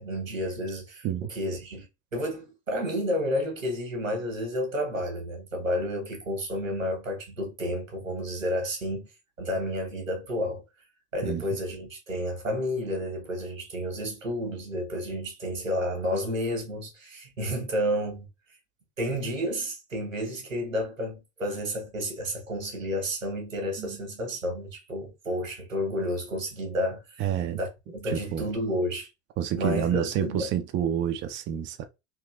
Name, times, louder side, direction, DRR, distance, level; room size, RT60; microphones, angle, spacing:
voice 1, 0.0-1.9 2.1-9.1 9.4-10.6 11.1-18.3 19.0-27.2 27.5-29.1 29.6-30.5, equal, 85° right, 1.3 m, -31 dB
voice 2, 27.2-27.6 28.1-28.4 29.4-31.8, right 9 dB, 30° right, 0.4 m, -28 dB
3.4 x 2.9 x 2.4 m
figure-of-eight pair, 70°, 38 cm